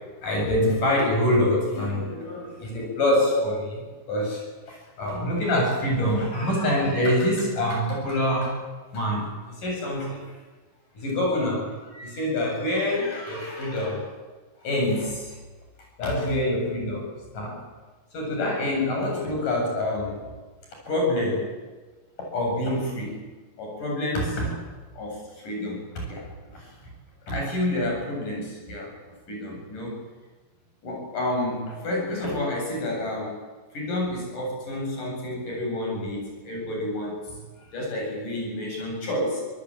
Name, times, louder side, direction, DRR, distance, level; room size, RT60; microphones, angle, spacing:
voice 1, 0.2-4.4 4.7-8.6 8.9-9.3 9.6-10.3 11.0-14.1 14.6-15.4 16.0-17.6 18.1-20.2 20.9-21.5 22.3-23.2 23.6-24.6 24.9-26.7 27.3-28.9 29.3-30.0 30.8-33.3 33.7-37.2 37.7-39.4, left 1 dB, 50° left, -1 dB, 9.3 m, -27 dB
25.5 x 19.0 x 9.0 m, 1.3 s
omnidirectional pair, 4.9 m